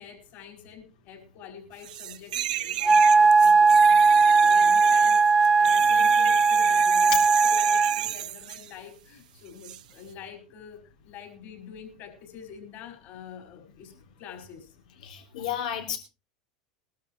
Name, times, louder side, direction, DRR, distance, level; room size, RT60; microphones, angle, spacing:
voice 1, 0.0-5.2 5.6-13.9 14.2-14.8, left 7 dB, 50° left, 4 dB, 5.3 m, -46 dB
sound 1, 1.8-8.7 9.6-9.8, right 13 dB, 80° right, 0.7 m, -33 dB
Wind instrument woodwind instrument, 2.8-8.1, right 4 dB, 10° right, 0.7 m, -18 dB
voice 2, 15.0-16.0, left 10 dB, 75° left, 4 dB, 3.1 m, -32 dB
21.0 x 12.5 x 3.1 m, 0.31 s
hypercardioid pair, 100°, 4 cm